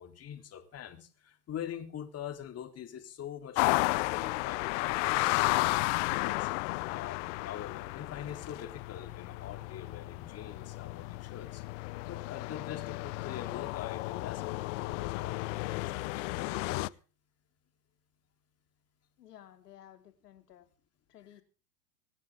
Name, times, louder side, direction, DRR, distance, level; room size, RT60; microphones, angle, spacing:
voice 1, 0.0-6.5 6.9-11.6 12.1-16.9, left 9 dB, 30° left, 5 dB, 3.7 m, -44 dB
sound 1, 3.5-16.9, left 24 dB, 50° left, 0.7 m, -33 dB
voice 2, 19.2-20.7 21.1-21.4, left 11 dB, 80° left, 8 dB, 2.7 m, -54 dB
25.0 x 9.6 x 3.7 m, 0.38 s
hypercardioid pair, 110°, 47 cm